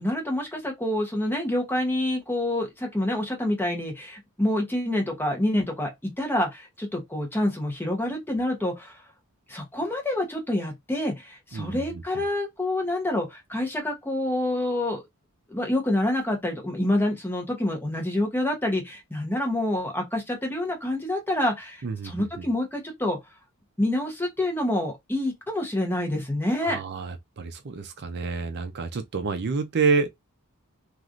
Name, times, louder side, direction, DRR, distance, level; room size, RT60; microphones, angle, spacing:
voice 1, 0.0-9.0 9.5-15.0 15.5-23.2 23.8-26.8, left 1 dB, 10° left, 0.9 m, -27 dB
voice 2, 11.5-12.0 21.8-22.4 26.6-30.1, right 4 dB, 50° right, 0.4 m, -28 dB
3.1 x 2.4 x 2.5 m
head